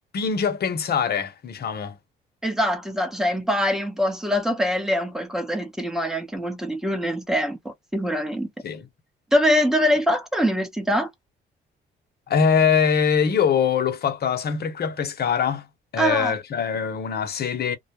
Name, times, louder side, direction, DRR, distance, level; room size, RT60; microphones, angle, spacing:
voice 1, 0.1-2.0 8.6-8.9 12.3-15.7 15.9-17.8, left 6 dB, 55° left, 0.7 m, -23 dB
voice 2, 2.4-8.5 9.3-11.1 16.0-16.3, equal, ahead, 0.9 m, -23 dB
2.2 x 2.0 x 2.9 m
cardioid pair, 90°, 20 cm